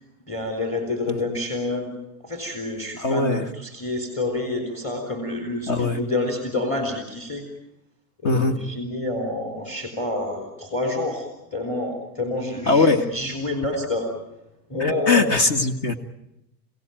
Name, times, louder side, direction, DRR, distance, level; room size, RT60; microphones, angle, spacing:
voice 1, 0.3-1.9 2.2-7.4 8.2-11.3 11.5-14.1 14.7-15.3, left 2 dB, 15° left, 2 dB, 3.8 m, -28 dB
voice 2, 3.0-3.5 5.7-6.0 8.2-8.6 12.7-13.1 14.8-15.9, left 3 dB, 40° left, 9 dB, 1.9 m, -20 dB
30.0 x 17.0 x 9.2 m, 0.87 s
supercardioid pair, 150°, 45 cm